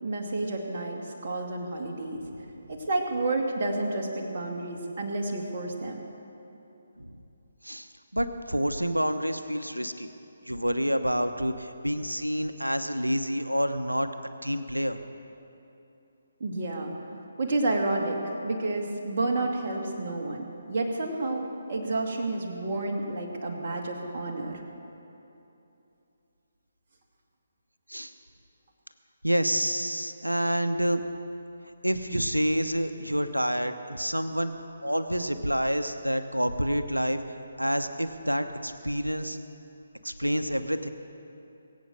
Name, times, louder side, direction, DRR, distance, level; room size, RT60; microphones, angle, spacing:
voice 1, 0.0-2.2 2.7-6.0 16.4-16.9 17.4-24.6, right 2 dB, 40° right, 0 dB, 2.3 m, -30 dB
voice 2, 7.6-10.1 10.4-14.1 14.4-15.0 27.9-28.1 29.2-31.0 31.8-34.5 34.8-37.2 37.6-39.4 40.0-40.9, equal, 90° right, 9 dB, 1.0 m, -28 dB
22.0 x 8.7 x 6.5 m, 2.8 s
figure-of-eight pair, 140°, 0 cm